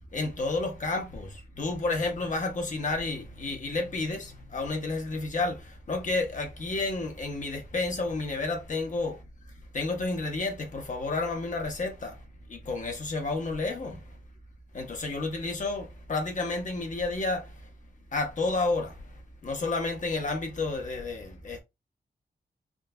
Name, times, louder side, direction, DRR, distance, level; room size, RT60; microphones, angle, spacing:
voice 1, 0.1-9.2 9.7-12.2 12.5-14.0 14.7-17.5 18.1-19.0 19.4-21.6, left 3 dB, 50° left, 0.9 m, -31 dB
3.7 x 2.5 x 2.2 m
wide cardioid pair, 95°, 17 cm